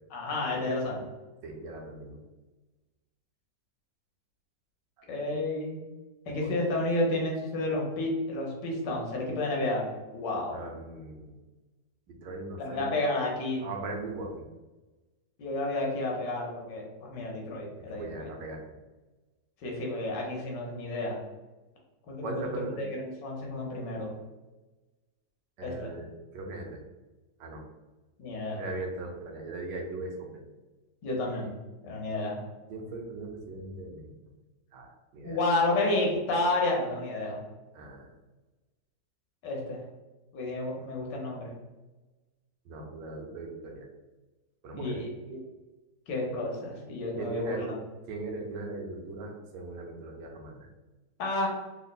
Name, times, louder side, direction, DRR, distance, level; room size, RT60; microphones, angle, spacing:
voice 1, 0.1-1.0 5.1-5.8 6.3-9.9 10.1-10.6 12.6-13.7 15.4-18.3 19.6-21.2 22.1-22.3 22.6-24.1 25.6-25.9 28.2-28.6 31.0-31.6 31.8-32.4 35.2-37.4 39.4-39.8 40.3-41.5 44.8-45.4 46.1-47.7 51.2-51.5, left 2 dB, 75° left, -1 dB, 1.5 m, -31 dB
voice 2, 1.4-2.2 5.0-5.3 6.3-6.5 10.5-11.4 12.1-12.9 13.6-14.5 17.9-18.6 22.2-22.9 25.6-26.1 26.3-26.8 27.4-27.7 28.6-30.5 32.7-34.1 34.7-35.4 37.7-38.1 42.6-43.9 44.6-45.0 47.2-47.7 48.1-50.7, right 2 dB, 80° right, 1 dB, 1.4 m, -39 dB
3.7 x 2.1 x 4.0 m, 1.1 s
omnidirectional pair, 1.9 m